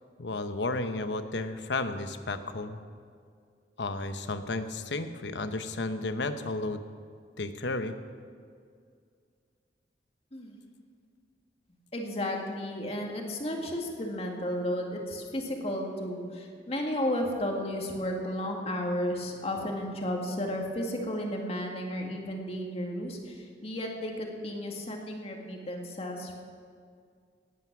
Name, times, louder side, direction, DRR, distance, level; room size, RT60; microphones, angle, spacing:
voice 1, 0.2-2.8 3.8-6.8 7.4-7.9, left 2 dB, 85° left, 9 dB, 0.9 m, -33 dB
voice 2, 11.9-26.4, left 1 dB, 35° left, 1 dB, 2.0 m, -33 dB
18.0 x 9.4 x 6.1 m, 2.2 s
head